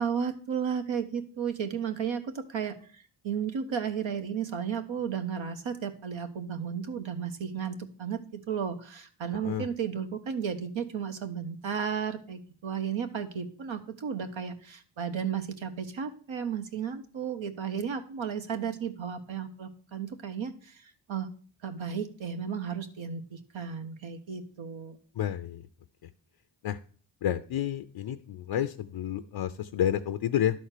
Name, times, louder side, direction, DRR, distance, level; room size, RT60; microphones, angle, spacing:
voice 1, 0.0-2.8 3.2-20.8 21.1-21.3 21.6-25.0, right 7 dB, 80° right, 7 dB, 1.2 m, -33 dB
voice 2, 25.1-25.7 26.0-26.1 26.6-26.8 27.2-30.6, left 10 dB, 80° left, 9 dB, 0.6 m, -30 dB
11.0 x 4.3 x 6.6 m, 0.44 s
cardioid pair, 55°, 46 cm